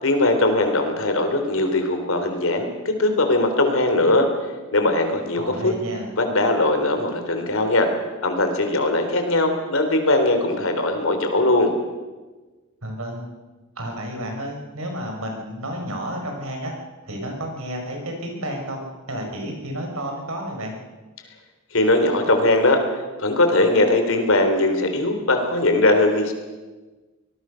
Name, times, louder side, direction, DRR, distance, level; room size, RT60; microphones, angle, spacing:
voice 1, 0.0-4.3 4.7-5.7 6.2-7.9 8.2-11.7 21.7-22.8 23.2-26.3, left 2 dB, 65° left, 6 dB, 3.8 m, -20 dB
voice 2, 5.4-6.1 12.8-13.3 13.8-16.7 17.0-18.8 19.1-20.8, equal, 70° right, 2 dB, 5.6 m, -31 dB
24.0 x 19.5 x 6.5 m, 1.2 s
head